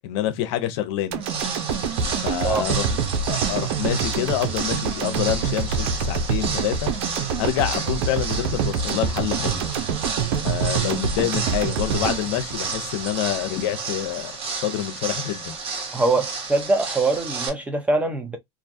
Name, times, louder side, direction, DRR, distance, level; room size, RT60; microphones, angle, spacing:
voice 1, 0.0-1.2 2.2-3.0 3.3-6.9 7.4-9.6 10.4-15.6, left 12 dB, 65° left, 0.7 m, -27 dB
sound 1, 1.1-13.3 13.7-13.8, right 6 dB, 65° right, 0.6 m, -26 dB
sound 2, 1.2-17.5, right 4 dB, 40° right, 1.0 m, -32 dB
voice 2, 15.9-18.4, right 2 dB, 10° right, 0.8 m, -23 dB
2.5 x 2.2 x 2.6 m
hypercardioid pair, 100°, 14 cm